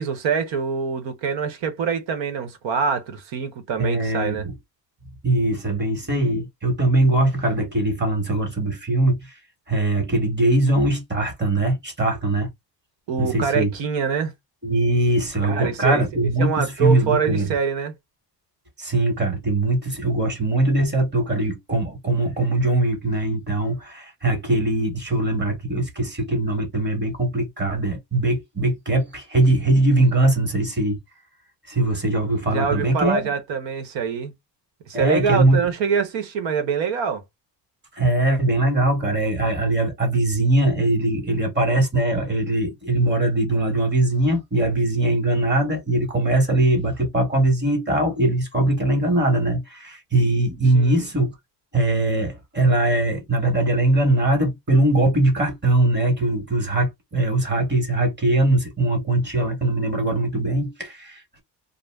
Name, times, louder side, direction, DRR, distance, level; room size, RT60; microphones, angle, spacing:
voice 1, 0.0-4.4 13.1-14.3 15.4-16.0 16.4-17.9 32.5-34.3 34.9-37.2 50.7-51.0, right 6 dB, 85° right, 1.0 m, -25 dB
voice 2, 3.8-4.5 5.2-9.4 9.7-12.5 13.2-13.7 14.6-17.5 18.8-31.0 31.7-33.3 34.9-35.6 37.9-51.3 51.7-61.4, right 2 dB, 25° right, 0.9 m, -21 dB
2.5 x 2.0 x 3.2 m
cardioid pair, 160°, 44 cm